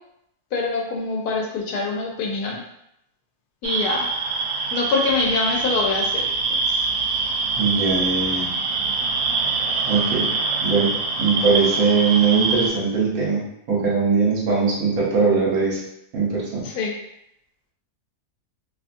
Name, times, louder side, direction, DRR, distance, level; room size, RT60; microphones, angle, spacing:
voice 1, 0.5-2.6 3.6-4.1 4.7-6.3 6.7-6.8 16.6-16.9, left 4 dB, 85° left, 0 dB, 1.2 m, -25 dB
sound 1, 3.6-12.7, right 4 dB, 90° right, 1.1 m, -24 dB
voice 2, 7.6-8.5 9.8-10.3 10.6-10.9 11.2-13.4 13.7-15.8 16.1-16.6, right 5 dB, 70° right, -5 dB, 1.3 m, -20 dB
2.9 x 2.4 x 2.5 m, 0.78 s
omnidirectional pair, 1.6 m